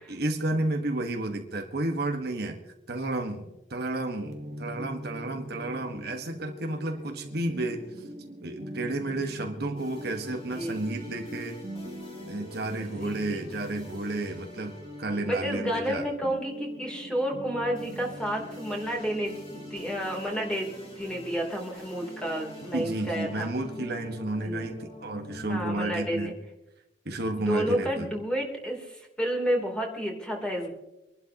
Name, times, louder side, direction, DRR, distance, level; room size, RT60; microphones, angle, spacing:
voice 1, 0.0-2.6 2.9-7.9 8.4-11.7 12.2-16.1 22.7-26.3 27.0-28.1, right 2 dB, 60° right, 4 dB, 1.5 m, -32 dB
sound 1, 4.2-23.8, equal, 40° right, 1.3 m, -43 dB
sound 2, 9.8-25.8, left 1 dB, 30° left, 3.7 m, -46 dB
voice 2, 12.8-13.4 15.2-23.5 24.4-24.7 25.5-26.3 27.4-30.7, equal, 5° left, 0 dB, 3.2 m, -31 dB
26.0 x 12.0 x 3.0 m, 0.94 s
head